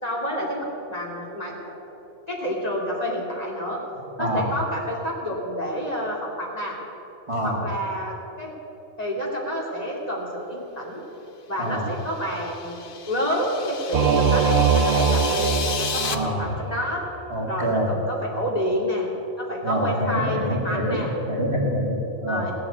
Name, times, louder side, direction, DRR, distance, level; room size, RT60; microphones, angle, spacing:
voice 1, 0.0-1.7 2.3-3.8 4.2-6.8 7.4-8.5 9.0-11.0 11.5-17.0 17.5-19.1 19.4-21.1 22.3-22.5, equal, 35° left, -3 dB, 2.5 m, -29 dB
voice 2, 4.2-4.5 7.3-7.6 11.6-11.9 16.1-16.5 17.3-17.9 19.6-21.0 21.3-22.5, equal, 30° right, -3 dB, 2.4 m, -26 dB
sound 1, 12.0-16.1, left 6 dB, 55° left, 1.0 m, -33 dB
Singing / Musical instrument, 13.9-16.8, right 5 dB, 70° right, 1.0 m, -22 dB
17.0 x 8.6 x 8.2 m, 3.0 s
omnidirectional pair, 1.1 m